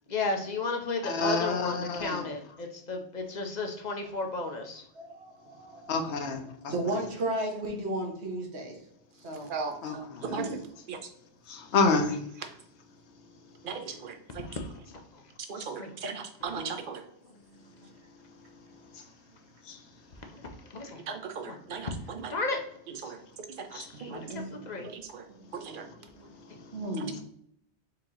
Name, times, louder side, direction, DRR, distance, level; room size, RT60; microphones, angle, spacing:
voice 1, 0.1-4.8 14.9-15.2 15.8-15.9 16.4-16.5 20.3-21.0 21.5-21.6 21.8-21.9 22.3-22.6 24.0-24.9 26.5-26.6, left 3 dB, 45° left, 3 dB, 0.7 m, -34 dB
voice 2, 1.0-2.3 5.9-6.7 9.4-10.4 11.5-12.2 13.9-14.0 14.5-14.6 15.6-15.7 18.4-19.0 19.6-19.9 20.8-20.9 23.7-24.0 25.5-26.0 26.3-26.8, left 3 dB, 75° left, 6 dB, 1.0 m, -31 dB
voice 3, 4.9-6.3 6.7-8.8 9.2-9.5 9.8-10.0 10.2-10.6 16.5-16.8 23.9-24.8 25.8-27.2, right 1 dB, 70° right, 2 dB, 1.3 m, -35 dB
voice 4, 9.5-10.0 10.3-10.4 10.9-11.0 13.6-14.1 15.5-17.0 21.1-21.9 23.0-23.2 24.0-24.2 24.9-25.2 25.5-25.8, right 5 dB, 55° right, 5 dB, 0.8 m, -37 dB
4.7 x 2.9 x 3.7 m, 0.69 s
omnidirectional pair, 1.1 m